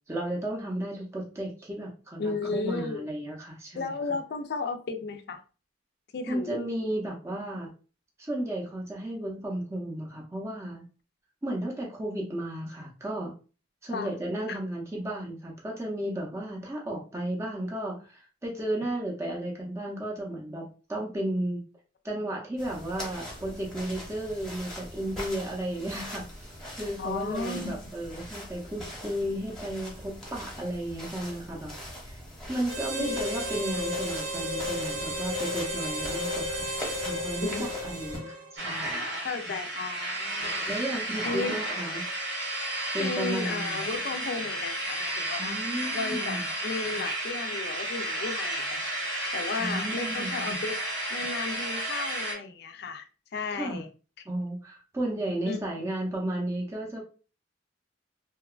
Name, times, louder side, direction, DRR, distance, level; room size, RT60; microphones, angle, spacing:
voice 1, 0.1-3.9 6.3-7.7 8.2-10.8 11.4-13.3 13.8-21.6 22.0-31.7 32.0-32.2 32.5-36.7 37.0-39.0 40.7-42.0 42.9-43.8 45.4-46.5 49.6-50.6 53.5-53.8 54.3-57.0, right 1 dB, 15° right, 0.5 m, -34 dB
voice 2, 2.2-3.0 3.7-5.4 6.1-6.6 13.9-14.1 14.5-14.6 27.0-27.9 33.0-33.2 37.4-37.7 39.2-40.7 41.2-41.6 43.0-45.5 45.9-50.8 51.1-53.1 53.3-53.9 55.5-55.9, left 4 dB, 60° left, 0.4 m, -34 dB
sound 1, 22.6-38.2, left 1 dB, ahead, 0.9 m, -42 dB
Harmonica, 32.7-38.6, left 1 dB, 65° right, 0.6 m, -33 dB
sound 2, 38.6-52.3, right 1 dB, 85° right, 1.1 m, -32 dB
2.8 x 2.2 x 2.3 m
head